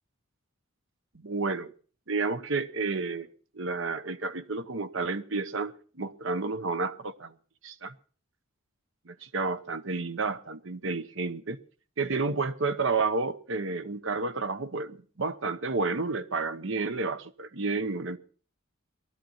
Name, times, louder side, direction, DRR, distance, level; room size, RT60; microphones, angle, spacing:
voice 1, 1.1-1.7 2.1-3.3 3.5-7.3 7.6-7.9 9.1-11.6 12.0-18.2, right 3 dB, 65° right, 1.0 m, -31 dB
18.5 x 13.0 x 4.3 m
head